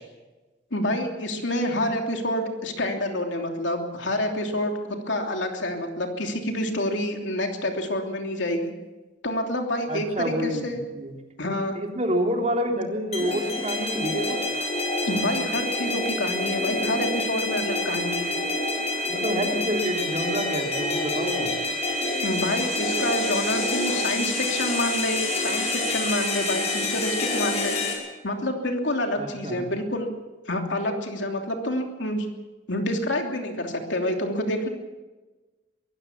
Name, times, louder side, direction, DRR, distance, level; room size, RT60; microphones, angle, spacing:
voice 1, 0.7-8.7 9.2-10.8 11.4-11.7 15.1-18.4 22.2-27.8 28.2-30.1 30.5-32.3 32.7-34.7, left 1 dB, 70° left, 3 dB, 3.0 m, -28 dB
voice 2, 9.9-11.1 11.7-14.4 19.1-21.5 29.2-29.7, equal, 35° right, 1 dB, 3.2 m, -28 dB
sound 1, 13.1-27.9, left 2 dB, 35° left, 5.4 m, -27 dB
23.5 x 15.5 x 7.3 m, 1.2 s
head